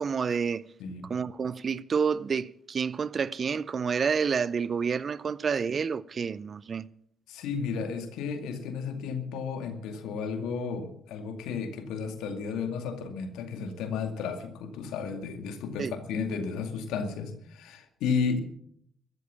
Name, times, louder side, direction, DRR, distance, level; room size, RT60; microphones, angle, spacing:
voice 1, 0.0-0.7 1.0-6.9 15.8-16.0, right 6 dB, 45° right, 0.5 m, -29 dB
voice 2, 7.3-18.4, left 5 dB, 75° left, 2.3 m, -33 dB
14.5 x 12.5 x 7.1 m
hypercardioid pair, 50°, 0 cm